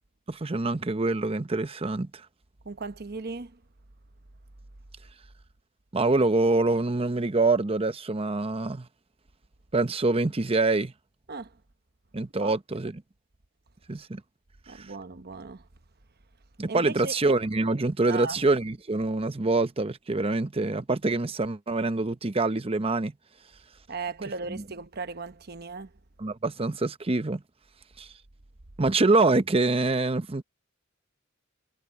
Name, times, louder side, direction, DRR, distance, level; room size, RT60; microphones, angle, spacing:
voice 1, 0.3-2.1 5.9-8.9 9.7-10.9 12.1-13.0 13.9-14.2 14.7-14.8 16.6-23.1 24.5-24.6 26.2-27.4 28.0-28.1 28.8-30.4, right 3 dB, 30° right, 0.8 m, -25 dB
voice 2, 2.6-3.6 11.3-11.5 12.4-12.5 14.7-15.6 16.7-17.1 18.1-18.4 23.9-25.9, right 4 dB, 50° right, 1.0 m, -37 dB
head